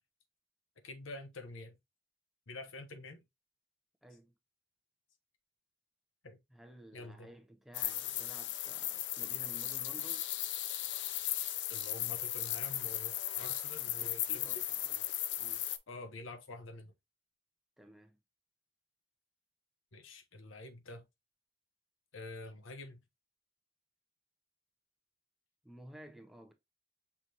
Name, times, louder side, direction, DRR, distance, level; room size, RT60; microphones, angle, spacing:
voice 1, 0.8-1.8 2.5-3.2 6.2-6.4 6.9-7.3 11.7-14.6 15.9-16.9 19.9-21.0 22.1-23.0, left 2 dB, 85° left, 1.0 m, -47 dB
voice 2, 4.0-4.3 6.5-10.3 14.0-15.1 15.4-15.7 17.8-18.2 25.6-26.5, equal, ahead, 0.6 m, -54 dB
sound 1, 7.7-15.8, left 12 dB, 60° left, 0.5 m, -36 dB
5.9 x 3.2 x 2.8 m
head